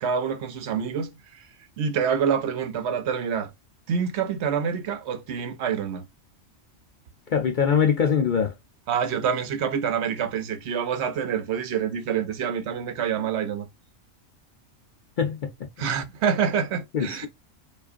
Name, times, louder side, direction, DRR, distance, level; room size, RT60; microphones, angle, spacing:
voice 1, 0.0-1.1 1.8-3.5 3.9-6.0 8.9-13.7 15.8-17.3, right 7 dB, 70° right, 0.8 m, -26 dB
voice 2, 7.3-8.5 15.2-15.5 16.9-17.3, left 7 dB, 55° left, 0.6 m, -22 dB
4.7 x 2.5 x 2.5 m
omnidirectional pair, 1.3 m